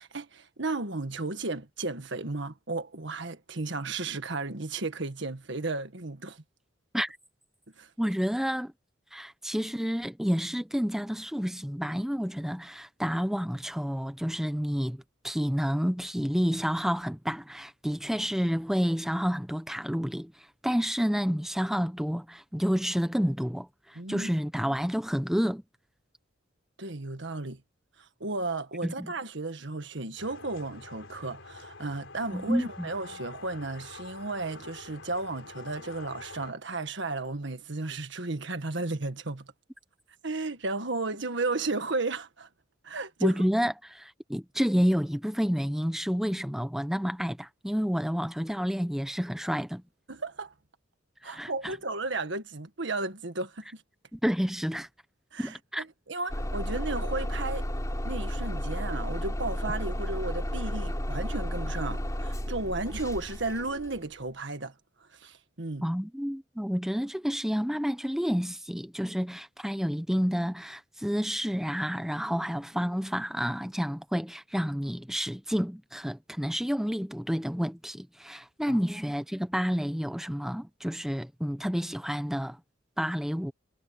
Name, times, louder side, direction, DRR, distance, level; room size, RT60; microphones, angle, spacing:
voice 1, 0.0-6.4 7.8-7.9 24.0-24.3 26.8-27.6 28.0-39.5 40.2-42.5 42.8-43.4 50.1-50.5 51.2-53.8 55.3-57.7 58.0-64.7 65.0-65.9 78.7-78.8, right 3 dB, 65° right, 1.7 m, -34 dB
voice 2, 8.0-8.7 9.1-20.3 20.6-25.6 28.8-29.1 32.3-32.9 43.2-49.8 51.2-51.7 54.1-54.9 55.4-55.8 65.8-82.6 83.0-83.5, equal, ahead, 0.9 m, -29 dB
sound 1, 30.2-36.5, left 3 dB, 75° left, 4.6 m, -46 dB
Bus / Engine starting, 56.3-64.1, equal, 20° left, 3.5 m, -32 dB
head